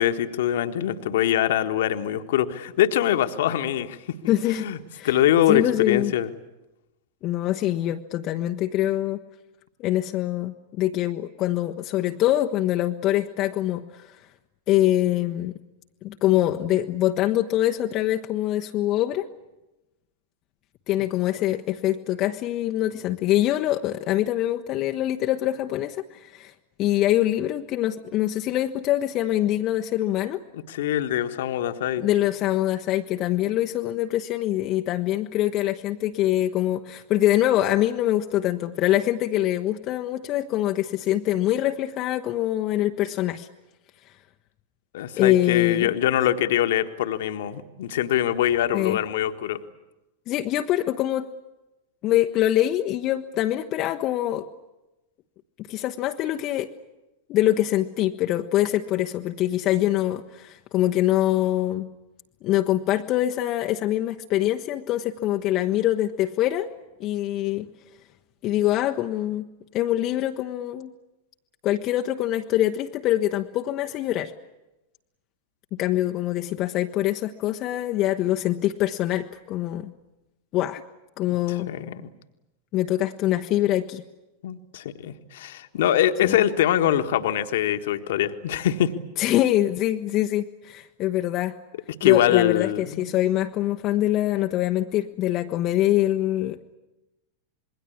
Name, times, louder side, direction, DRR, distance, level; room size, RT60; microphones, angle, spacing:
voice 1, 0.0-4.8 5.0-6.3 30.5-32.0 44.9-49.6 81.5-82.1 84.4-88.9 92.0-93.0, left 11 dB, 55° left, 9 dB, 1.5 m, -23 dB
voice 2, 4.3-4.7 5.0-5.1 5.5-6.1 7.2-9.2 9.8-14.1 14.7-15.6 16.0-19.3 20.9-26.5 26.8-30.4 32.0-43.5 45.2-45.9 48.7-49.0 50.3-51.3 52.0-54.4 55.7-56.7 57.3-61.9 62.4-66.7 67.0-67.7 68.4-69.5 69.7-70.9 71.6-74.3 75.7-79.9 80.5-80.8 81.2-81.7 82.7-84.0 86.2-86.4 89.2-91.5 92.0-96.7, left 13 dB, 35° left, 4 dB, 1.0 m, -24 dB
27.0 x 21.5 x 8.6 m, 0.97 s
figure-of-eight pair, 90°, 0 cm